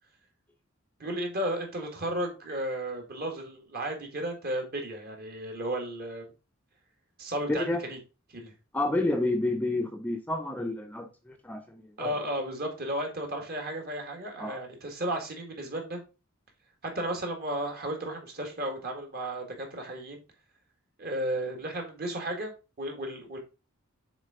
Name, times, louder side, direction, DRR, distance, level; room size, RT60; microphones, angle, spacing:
voice 1, 1.0-6.3 7.2-7.6 7.9-8.0 8.3-8.5 12.0-16.0 16.9-20.2 21.0-22.5 22.8-23.4, right 1 dB, 45° right, 1.8 m, -34 dB
voice 2, 7.5-7.8 8.7-12.1 14.4-14.6, left 2 dB, 10° left, 0.5 m, -30 dB
7.0 x 3.8 x 3.6 m
head